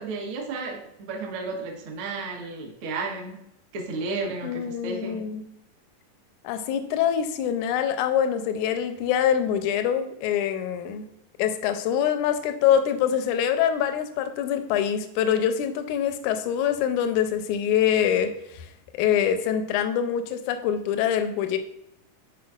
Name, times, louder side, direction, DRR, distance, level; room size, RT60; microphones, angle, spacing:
voice 1, 0.0-3.4 3.7-5.2, right 3 dB, 60° right, 0 dB, 1.4 m, -33 dB
voice 2, 4.4-5.4 6.4-11.0 11.4-18.7 18.9-21.6, left 9 dB, 80° left, 8 dB, 1.8 m, -24 dB
10.5 x 4.5 x 2.4 m, 0.81 s
omnidirectional pair, 3.9 m